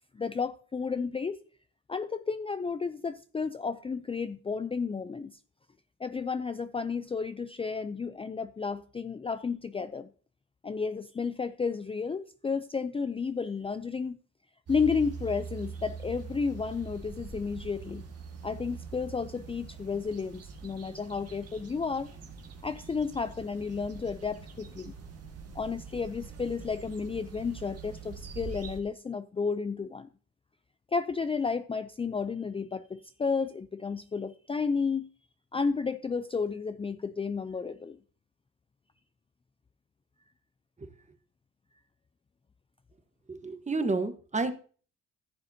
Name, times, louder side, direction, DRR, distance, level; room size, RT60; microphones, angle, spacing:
voice 1, 0.1-1.4 1.9-5.4 6.0-10.1 10.6-14.2 14.7-18.1 18.4-22.1 22.6-24.9 25.5-30.1 30.9-35.1 35.5-38.0, left 5 dB, 20° left, 0.4 m, -32 dB
sound 1, 14.7-28.8, right 5 dB, 55° right, 1.9 m, -44 dB
voice 2, 43.3-44.5, right 3 dB, 25° right, 1.2 m, -30 dB
14.5 x 7.2 x 2.8 m
cardioid pair, 90°, 30 cm